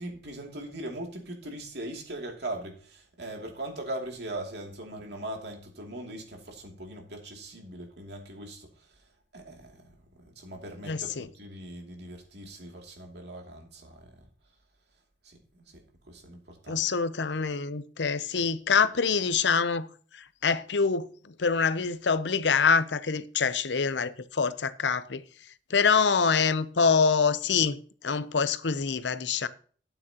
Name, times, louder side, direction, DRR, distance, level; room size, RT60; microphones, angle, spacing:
voice 1, 0.0-8.9 9.3-14.2 15.2-16.8, right 1 dB, 65° right, 2.7 m, -40 dB
voice 2, 10.9-11.3 16.7-19.9 20.1-25.2 25.7-27.8 28.0-29.5, left 5 dB, 70° left, 0.7 m, -25 dB
12.5 x 9.1 x 2.9 m
head